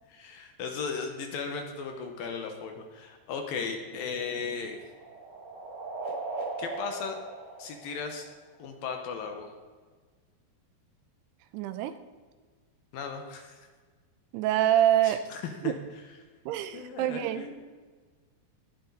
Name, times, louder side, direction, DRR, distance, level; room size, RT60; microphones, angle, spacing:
voice 1, 0.1-4.8 6.6-7.2 7.6-8.3 8.6-9.5 12.9-13.7 15.0-15.7 16.7-17.5, left 5 dB, 70° left, 4 dB, 2.6 m, -36 dB
sound 1, 3.8-8.6, right 3 dB, 65° right, 1.1 m, -39 dB
voice 2, 11.5-12.0 14.3-15.2 15.6-15.8 16.5-17.5, right 12 dB, 80° right, 11 dB, 2.6 m, -26 dB
19.5 x 9.0 x 4.0 m, 1.4 s
omnidirectional pair, 4.9 m